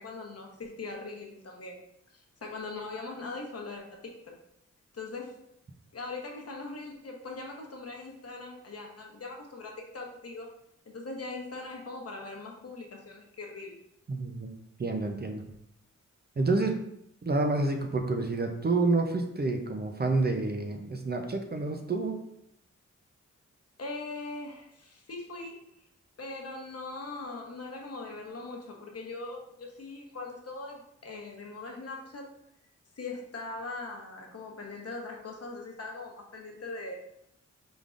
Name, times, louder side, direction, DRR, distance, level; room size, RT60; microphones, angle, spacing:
voice 1, 0.0-4.3 4.9-5.4 5.9-10.5 10.9-13.8 23.8-25.7 26.2-32.3 33.0-36.9, left 3 dB, 50° left, 0 dB, 1.0 m, -41 dB
voice 2, 14.1-14.5 14.8-15.4 16.4-16.8 17.2-22.2, right 3 dB, 35° right, 4 dB, 0.5 m, -28 dB
5.1 x 3.7 x 2.4 m, 0.76 s
wide cardioid pair, 95°, 30 cm